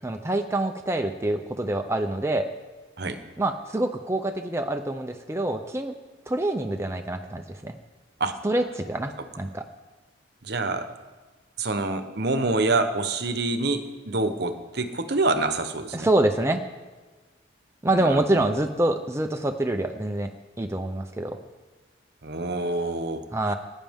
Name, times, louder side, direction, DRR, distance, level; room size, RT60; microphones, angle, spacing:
voice 1, 0.0-2.5 3.4-5.9 6.3-7.7 8.4-9.6 15.9-16.6 17.8-20.3 20.6-21.4 23.3-23.5, right 1 dB, 15° right, 5 dB, 0.6 m, -26 dB
voice 2, 10.4-10.9 11.6-16.1 17.9-18.4 22.2-23.2, right 2 dB, 55° right, 9 dB, 1.0 m, -26 dB
20.0 x 10.0 x 3.6 m, 1.3 s
head